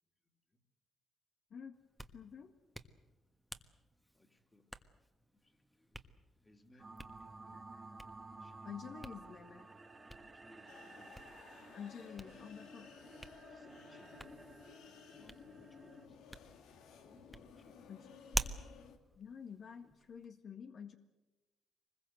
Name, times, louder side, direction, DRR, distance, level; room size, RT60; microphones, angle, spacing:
voice 1, 0.2-0.6 4.1-4.7 5.3-6.0 6.4-8.8 10.1-12.5 13.5-14.5 14.8-16.2 17.0-18.0, left 2 dB, 20° left, 6 dB, 3.0 m, -67 dB
Hands, 1.7-20.3, equal, ahead, 1.5 m, -49 dB
voice 2, 2.1-2.5 7.5-7.8 8.6-9.7 11.7-12.9 17.9-18.1 19.1-21.0, left 7 dB, 60° left, 6 dB, 1.7 m, -49 dB
sound 1, 6.8-16.1, right 3 dB, 25° right, 2.1 m, -54 dB
sound 2, 10.7-19.0, left 7 dB, 85° left, 2.4 m, -57 dB
24.0 x 21.0 x 8.0 m, 1.1 s
cardioid pair, 90°, 0 cm